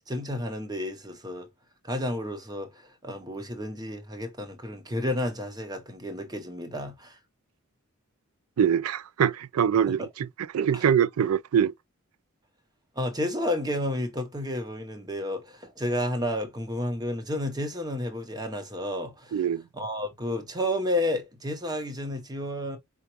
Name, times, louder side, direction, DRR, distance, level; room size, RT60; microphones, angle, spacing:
voice 1, 0.0-1.5 1.8-7.1 9.9-10.0 10.7-10.9 13.0-19.4 19.7-22.8, left 1 dB, 20° right, 0.9 m, -31 dB
voice 2, 8.6-10.3 10.5-11.7 19.3-19.6, right 8 dB, 85° right, 0.4 m, -23 dB
5.0 x 2.2 x 3.0 m
head